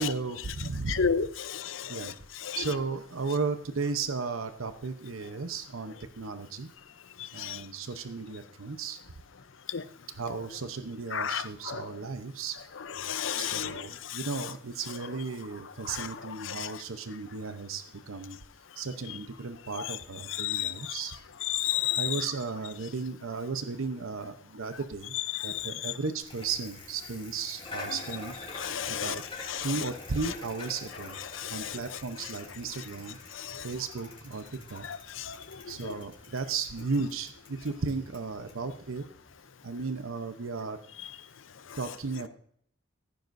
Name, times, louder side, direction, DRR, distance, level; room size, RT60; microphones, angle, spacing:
voice 1, 0.0-1.1 1.9-2.1 2.5-6.7 7.3-9.0 10.2-12.6 13.4-18.4 18.8-21.1 22.0-25.1 25.4-28.3 28.9-29.2 29.6-31.2 31.5-33.2 33.6-34.9 35.7-39.1 39.6-40.8 41.8-42.3, right 4 dB, 90° right, 9 dB, 0.8 m, -35 dB
voice 2, 0.9-2.0 2.5-2.6 7.4-7.6 9.7-9.8 11.1-11.8 13.0-13.7 14.1-14.2 15.9-16.1 16.5-16.7 20.4-20.7 21.5-22.1 25.3-25.7 28.6-29.2 29.5-29.7 31.3-31.8 33.4-33.7 35.2-35.4 35.8-35.9, left 8 dB, 70° left, 14 dB, 0.6 m, -31 dB
Bicycle, 26.2-39.3, left 3 dB, 25° left, 3.2 m, -47 dB
15.5 x 9.4 x 2.6 m, 0.64 s
head